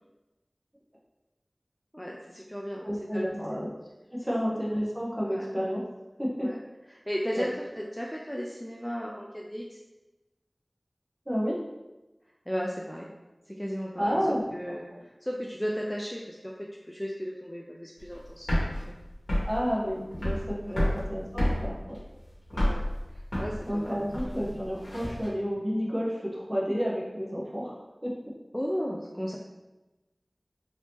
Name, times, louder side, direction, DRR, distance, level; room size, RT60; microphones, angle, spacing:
voice 1, 1.9-2.9 3.1-3.6 5.2-5.4 6.4-6.6 7.1-9.8 12.5-13.1 13.5-14.2 14.5-14.8 15.2-18.5 18.9-19.0 20.7-20.8 22.5-22.9 23.1-24.0 28.5-29.4, equal, 10° left, -3 dB, 0.4 m, -35 dB
voice 2, 2.8-3.7 4.1-5.8 6.2-6.5 7.3-7.5 11.3-11.6 14.0-14.7 19.5-22.0 23.6-27.8 28.0-28.1, equal, 20° right, -4 dB, 0.9 m, -30 dB
sound 1, 18.0-25.3, equal, 60° left, 1.3 m, -30 dB
3.4 x 2.7 x 2.9 m, 1.0 s
wide cardioid pair, 50°, 0 cm